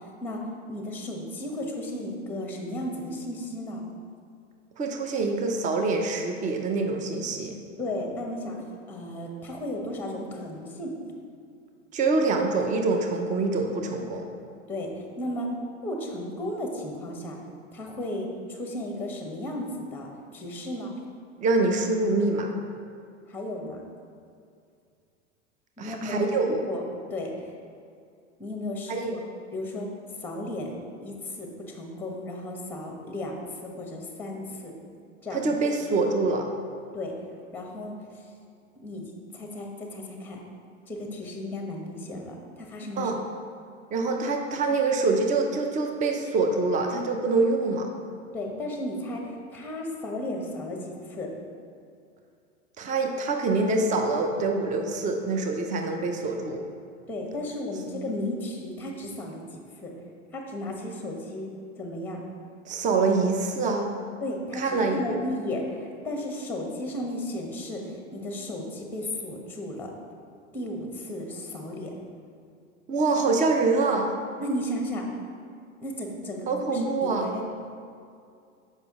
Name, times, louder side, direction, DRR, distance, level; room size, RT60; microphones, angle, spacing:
voice 1, 0.0-3.8 7.8-10.9 14.7-15.6 15.8-17.4 17.7-20.9 23.3-23.8 25.8-26.8 27.1-27.5 28.4-29.2 29.5-29.9 30.2-30.7 31.0-34.7 35.2-35.4 36.9-37.2 37.5-38.3 38.8-40.4 40.9-43.2 48.3-51.3 57.1-59.9 60.3-61.5 61.8-62.2 64.2-69.9 70.5-71.9 74.4-75.1 75.8-77.5, left 1 dB, 5° left, 1 dB, 0.9 m, -34 dB
voice 2, 4.8-7.6 11.9-14.3 21.4-22.5 25.8-26.6 28.9-29.1 35.3-36.5 43.0-43.1 43.9-47.9 52.8-56.6 62.6-63.9 64.5-65.0 72.9-74.1 76.5-77.3, right 3 dB, 20° right, 3 dB, 0.6 m, -25 dB
6.8 x 5.3 x 3.6 m, 2.4 s
hypercardioid pair, 95°, 38 cm